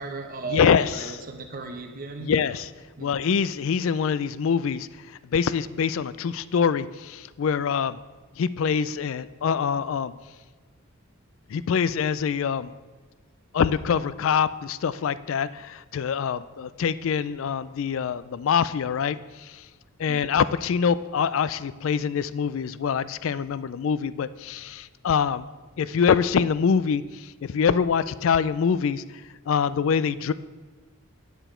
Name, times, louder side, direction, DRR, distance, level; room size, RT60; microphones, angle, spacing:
voice 1, 0.0-2.5 3.0-3.1 20.1-20.2, right 3 dB, 40° right, 5 dB, 0.7 m, -36 dB
voice 2, 0.5-0.9 2.2-2.7 3.0-4.9 5.3-8.0 8.4-10.1 11.5-12.7 13.5-19.2 20.0-25.4 25.8-27.0 27.5-29.0 29.5-30.3, left 6 dB, 60° left, 16 dB, 0.3 m, -24 dB
10.0 x 6.9 x 4.4 m, 1.4 s
head